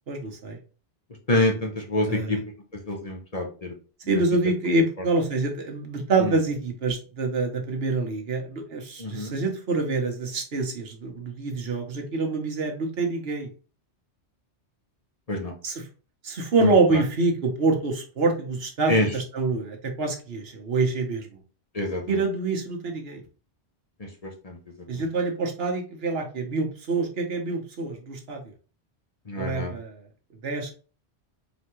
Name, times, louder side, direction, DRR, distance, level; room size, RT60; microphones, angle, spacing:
voice 1, 0.1-0.6 2.1-2.4 4.1-13.5 15.6-15.9 16.2-21.4 22.1-23.2 24.9-28.4 29.4-30.0 30.4-30.7, right 3 dB, 65° right, 3 dB, 1.2 m, -26 dB
voice 2, 1.3-2.4 2.9-3.7 9.0-9.3 15.3-15.5 16.6-16.7 18.9-19.1 21.7-22.0 24.4-24.6 29.3-29.7, left 2 dB, 35° left, 1 dB, 0.9 m, -25 dB
4.0 x 3.4 x 3.0 m, 0.37 s
omnidirectional pair, 1.1 m